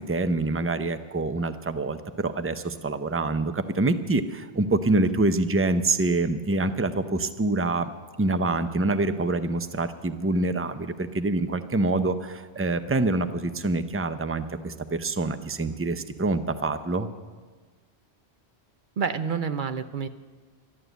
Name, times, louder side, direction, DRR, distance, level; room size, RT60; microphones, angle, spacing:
voice 1, 0.0-7.9 8.2-17.1, right 2 dB, 20° right, 10 dB, 0.4 m, -26 dB
voice 2, 19.0-20.1, right 6 dB, 55° right, 10 dB, 0.8 m, -28 dB
12.5 x 11.5 x 8.0 m, 1.4 s
omnidirectional pair, 1.1 m